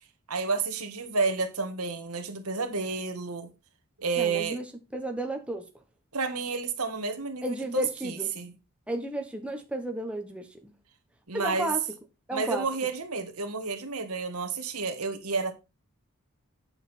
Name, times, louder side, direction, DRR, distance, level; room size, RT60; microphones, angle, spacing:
voice 1, 0.3-3.5 4.0-4.6 6.1-8.5 11.3-11.7 12.3-15.5, right 4 dB, 85° right, 1.7 m, -30 dB
voice 2, 4.2-4.6 4.9-5.7 7.4-8.3 8.9-10.7 11.3-11.8 12.3-12.7, right 1 dB, 5° right, 1.1 m, -32 dB
8.6 x 6.8 x 4.3 m
head